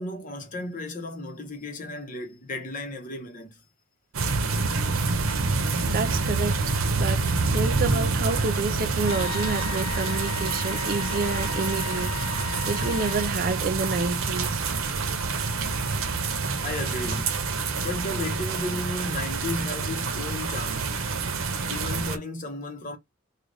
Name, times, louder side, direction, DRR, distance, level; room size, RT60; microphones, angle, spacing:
voice 1, 0.0-3.6 16.6-17.4 17.8-21.1 21.7-23.0, left 1 dB, 40° left, 0.9 m, -34 dB
sound 1, 4.1-22.2, right 4 dB, 90° right, 0.7 m, -27 dB
voice 2, 5.8-12.2 12.7-14.6, right 4 dB, 45° right, 0.4 m, -29 dB
Wind instrument woodwind instrument, 9.1-13.3, left 9 dB, 85° left, 0.4 m, -36 dB
3.3 x 2.3 x 3.8 m
head